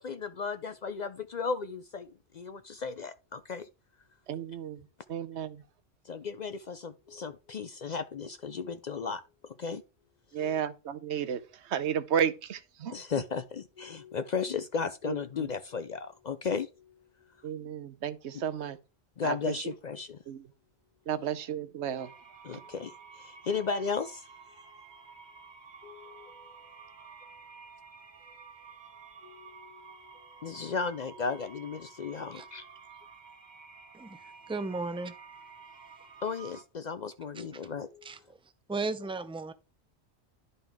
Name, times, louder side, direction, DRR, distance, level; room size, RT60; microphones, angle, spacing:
voice 1, 0.0-3.7 6.0-9.8 10.4-10.6 12.9-16.9 19.2-20.2 22.4-24.3 25.8-26.6 29.2-30.0 30.4-32.6 36.2-38.1, left 5 dB, 55° left, 0.5 m, -35 dB
voice 2, 4.3-5.6 10.3-13.0 15.0-15.5 17.4-18.8 19.2-19.6 20.3-20.5 21.1-22.1 22.5-22.6, right 8 dB, 80° right, 1.0 m, -33 dB
sound 1, 22.0-36.6, right 5 dB, 45° right, 1.2 m, -51 dB
voice 3, 34.5-35.1 37.4-37.5 38.0-38.2 38.7-39.5, right 3 dB, 5° right, 0.5 m, -34 dB
11.0 x 5.4 x 3.5 m
omnidirectional pair, 1.1 m